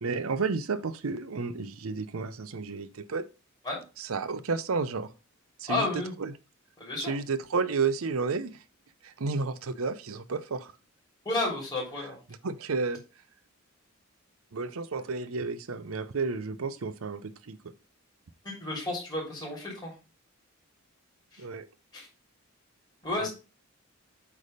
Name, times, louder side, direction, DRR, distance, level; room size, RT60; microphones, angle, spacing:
voice 1, 0.0-3.3 4.0-5.1 5.6-6.3 7.0-8.6 9.0-10.7 12.3-13.0 14.5-17.6 21.4-21.7 23.2-23.3, right 4 dB, 80° right, 0.6 m, -32 dB
voice 2, 5.7-6.1 6.8-7.1 11.2-12.2 18.4-19.9 21.3-21.4 21.9-22.1 23.0-23.3, left 2 dB, 20° left, 3.3 m, -32 dB
8.3 x 3.4 x 5.0 m
head